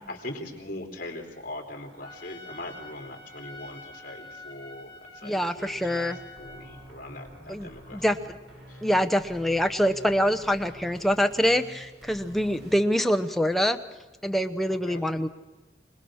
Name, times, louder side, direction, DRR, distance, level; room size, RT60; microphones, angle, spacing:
voice 1, 0.1-6.1 6.4-8.2 8.7-8.8 14.9-15.0, left 1 dB, 50° left, 2 dB, 3.7 m, -41 dB
Trumpet, 2.0-6.9, left 2 dB, 25° left, 3.0 m, -47 dB
voice 2, 5.2-6.2 7.5-8.4 8.8-13.8 14.2-15.3, equal, ahead, 8 dB, 0.9 m, -25 dB
sound 1, 5.5-12.8, equal, 85° right, 6.9 m, -48 dB
26.0 x 20.0 x 6.4 m, 1.1 s
head